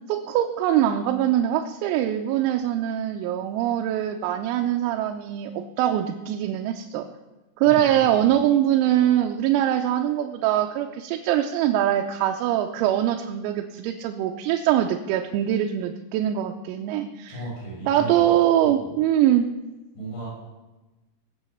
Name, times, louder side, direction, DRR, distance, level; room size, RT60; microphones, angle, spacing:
voice 1, 0.1-7.1 7.6-17.4 17.9-19.5, right 11 dB, 85° right, 3 dB, 3.5 m, -23 dB
voice 2, 7.6-8.3 17.3-18.3 18.6-19.0 20.0-20.3, right 2 dB, 55° left, -6 dB, 8.6 m, -36 dB
20.5 x 8.2 x 7.1 m, 1.1 s
omnidirectional pair, 6.0 m